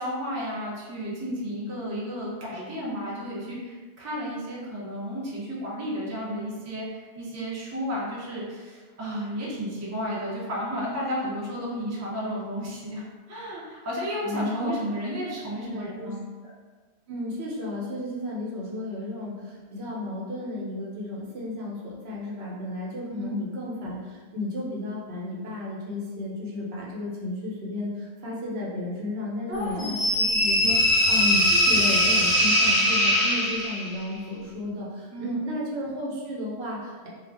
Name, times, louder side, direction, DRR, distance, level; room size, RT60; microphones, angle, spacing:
voice 1, 0.0-16.2 23.1-23.4 29.5-30.0 35.1-35.5, equal, 25° right, -5 dB, 0.3 m, -33 dB
voice 2, 14.2-14.8 15.6-16.1 16.4-16.5 17.1-37.1, left 1 dB, 70° right, -4 dB, 0.9 m, -33 dB
sound 1, 29.8-34.0, equal, 45° left, 0.6 m, -21 dB
2.4 x 2.0 x 3.2 m, 1.4 s
omnidirectional pair, 1.1 m